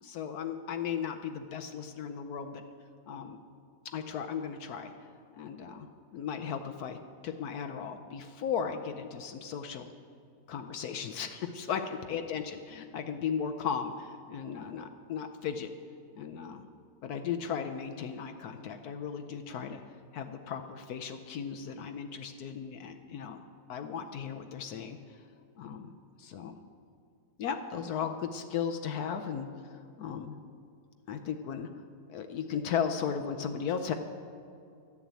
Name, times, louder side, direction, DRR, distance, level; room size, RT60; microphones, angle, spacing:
voice 1, 0.0-2.6 3.1-3.4 3.9-4.9 5.3-5.9 6.1-9.9 10.5-15.7 16.2-16.6 17.0-19.8 20.1-23.4 23.7-25.0 25.6-26.6 27.4-30.4 31.1-31.7 32.1-33.9, left 7 dB, 70° left, 7 dB, 1.1 m, -36 dB
12.0 x 7.1 x 8.1 m, 2.4 s
omnidirectional pair, 1.8 m